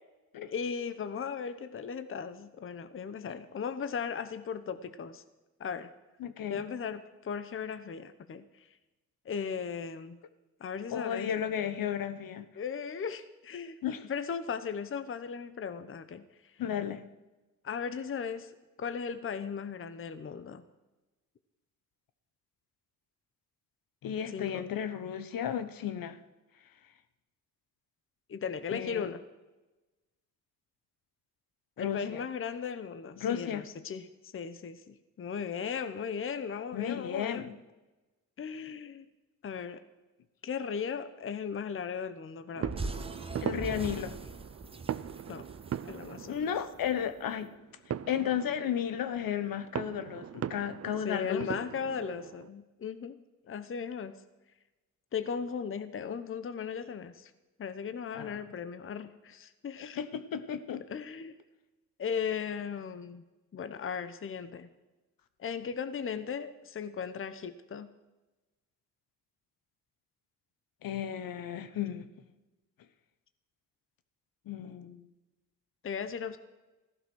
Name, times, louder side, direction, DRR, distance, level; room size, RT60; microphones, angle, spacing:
voice 1, 0.5-5.2 5.6-5.9 6.5-8.7 9.2-10.2 10.6-11.3 12.6-13.8 14.1-16.2 17.6-18.5 18.8-20.6 24.3-24.6 28.3-29.2 31.8-37.6 38.4-39.1 39.4-39.8 40.4-43.0 45.3-45.4 45.8-46.5 51.0-53.2 53.5-54.2 55.1-57.3 57.6-60.0 60.9-61.4 62.0-63.2 63.5-64.7 65.4-67.9 75.8-76.4, left 6 dB, 35° left, 11 dB, 0.9 m, -37 dB
voice 2, 6.2-6.6 10.9-12.5 13.8-14.1 16.6-17.0 24.0-26.2 28.7-29.1 31.8-32.2 33.2-33.7 36.7-37.5 43.4-44.2 46.3-47.5 48.1-51.6 58.1-58.4 60.0-60.8 70.8-72.1 74.5-75.1, left 9 dB, 65° left, 11 dB, 1.1 m, -34 dB
sound 1, 42.5-52.5, right 9 dB, 45° right, 0.6 m, -40 dB
sound 2, 42.6-47.0, right 2 dB, 15° right, 1.0 m, -41 dB
15.0 x 12.0 x 6.3 m, 1.1 s
cardioid pair, 100°, 37 cm